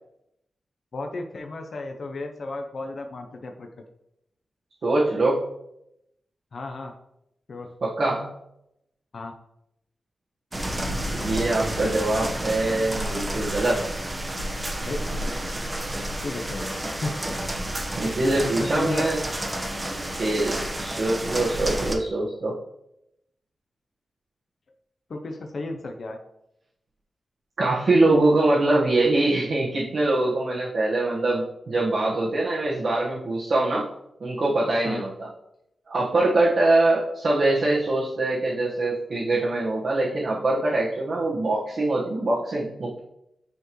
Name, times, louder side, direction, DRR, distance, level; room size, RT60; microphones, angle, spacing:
voice 1, 0.9-3.7 6.5-6.9 7.5-7.7 9.1-9.3 14.8-15.0 16.2-17.1 18.4-19.1 25.1-26.2 34.8-35.0, left 2 dB, 60° left, 3 dB, 0.7 m, -33 dB
voice 2, 4.8-5.4 7.8-8.3 11.1-13.8 18.0-19.2 20.2-22.5 27.6-33.9 34.2-35.3 35.9-43.0, right 2 dB, 65° right, -6 dB, 1.3 m, -23 dB
sound 1, 10.5-21.9, right 1 dB, 20° right, 1.1 m, -30 dB
9.4 x 4.5 x 3.1 m, 0.82 s
wide cardioid pair, 95°, 0 cm